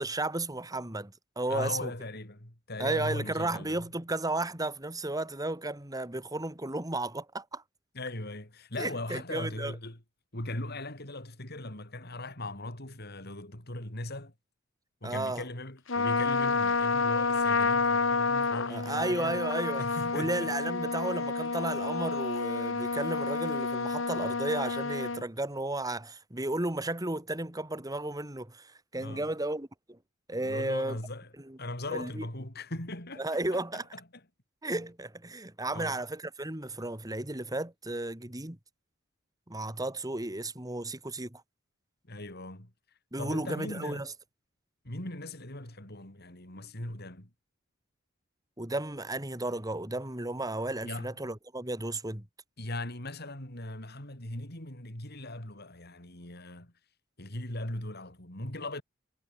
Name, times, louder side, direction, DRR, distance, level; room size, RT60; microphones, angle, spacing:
voice 1, 0.0-1.9 2.8-7.6 8.8-9.7 15.0-15.4 18.7-19.8 20.1-30.0 30.3-31.0 31.5-31.6 31.9-32.2 33.2-33.9 34.6-38.6 39.5-41.4 43.1-44.1 48.6-52.3, right 2 dB, 20° right, 2.5 m, -33 dB
voice 2, 1.5-3.9 7.9-10.0 10.3-14.3 15.0-19.4 19.8-20.8 29.0-29.3 30.4-31.3 31.6-34.2 35.7-36.0 42.1-42.7 43.2-44.1 44.8-47.3 50.8-51.1 52.6-56.7 57.2-58.8, left 1 dB, 55° left, 5.6 m, -39 dB
Trumpet, 15.9-25.2, left 4 dB, 75° left, 1.6 m, -29 dB
head